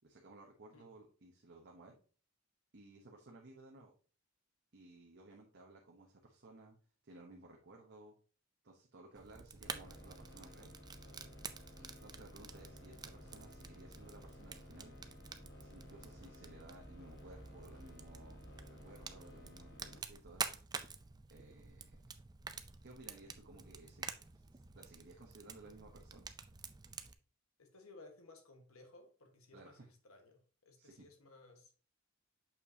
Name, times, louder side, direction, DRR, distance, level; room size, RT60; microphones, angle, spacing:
voice 1, 0.0-2.0 2.7-3.9 4.7-6.8 7.0-8.1 8.6-10.7 11.8-14.9 15.6-18.4 18.7-20.5 21.3-21.9 22.8-26.3 29.5-29.9 30.8-31.1, right 2 dB, 55° right, 1.0 m, -58 dB
Fire, 9.2-27.1, right 5 dB, 20° right, 0.4 m, -49 dB
sound 1, 9.6-20.0, left 1 dB, 60° left, 1.5 m, -55 dB
voice 2, 27.6-31.7, left 2 dB, 85° left, 1.4 m, -59 dB
6.7 x 5.5 x 2.7 m
head